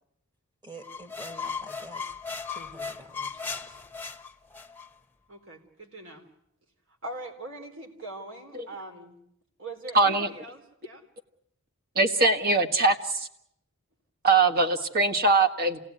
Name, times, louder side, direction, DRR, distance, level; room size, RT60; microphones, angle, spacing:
voice 1, 0.6-2.1 2.5-3.8, right 1 dB, 20° right, 6 dB, 2.1 m, -47 dB
sound 1, 0.8-4.9, left 5 dB, 10° left, 1.0 m, -37 dB
voice 2, 5.3-6.2 7.0-9.2 9.6-11.0, right 2 dB, 60° right, 3 dB, 3.9 m, -41 dB
voice 3, 9.9-10.3 12.0-13.3 14.2-15.8, right 3 dB, 45° right, 6 dB, 1.7 m, -22 dB
28.0 x 18.0 x 9.4 m, 0.76 s
head